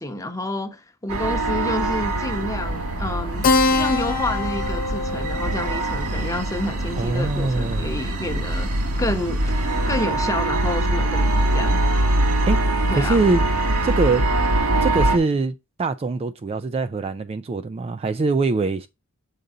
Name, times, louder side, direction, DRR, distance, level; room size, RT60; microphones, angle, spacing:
voice 1, 0.0-11.8 12.9-13.2, left 2 dB, 15° left, 0.9 m, -29 dB
sound 1, 1.1-15.2, right 2 dB, 85° right, 1.4 m, -23 dB
Keyboard (musical), 3.4-8.4, left 3 dB, 40° left, 0.7 m, -26 dB
voice 2, 7.0-7.9 12.5-13.4 13.8-14.3 14.8-18.9, right 3 dB, 25° right, 0.3 m, -23 dB
6.7 x 3.9 x 3.8 m
head